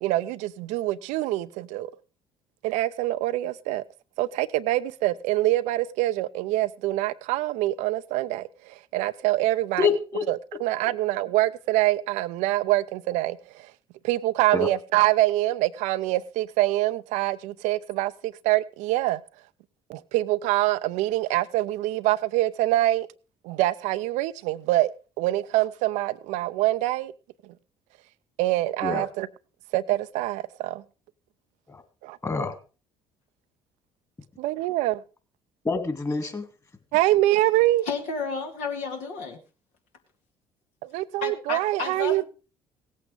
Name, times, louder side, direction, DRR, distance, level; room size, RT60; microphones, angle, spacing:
voice 1, 0.0-1.9 2.6-3.8 4.2-9.9 10.3-13.7 14.0-19.2 19.9-23.1 23.4-24.9 25.2-27.1 27.4-27.5 28.4-29.3 29.7-30.8 32.0-32.2 34.4-35.0 36.9-37.9 40.8-42.2, right 16 dB, 65° right, 0.6 m, -25 dB
voice 2, 9.8-10.2 14.5-14.7 28.8-29.0 31.7-31.8 32.2-32.5 35.6-36.5, left 5 dB, 25° left, 2.9 m, -26 dB
voice 3, 37.9-39.4 41.2-42.2, left 4 dB, 65° left, 2.3 m, -32 dB
17.0 x 8.4 x 5.0 m
hypercardioid pair, 55°, 13 cm